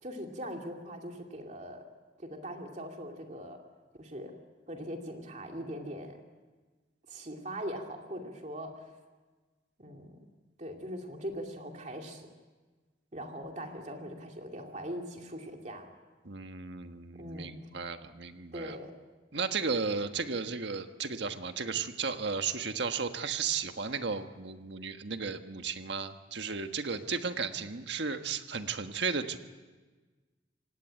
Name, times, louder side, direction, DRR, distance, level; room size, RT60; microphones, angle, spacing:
voice 1, 0.0-1.9 2.2-3.6 4.0-4.3 4.7-6.2 7.1-8.9 9.8-10.2 10.6-12.3 13.1-15.9 17.1-17.5 18.5-18.9, equal, 40° right, 2 dB, 2.7 m, -41 dB
voice 2, 16.2-18.8 19.3-29.4, right 5 dB, 70° right, 7 dB, 1.5 m, -34 dB
27.0 x 17.5 x 9.0 m, 1.3 s
head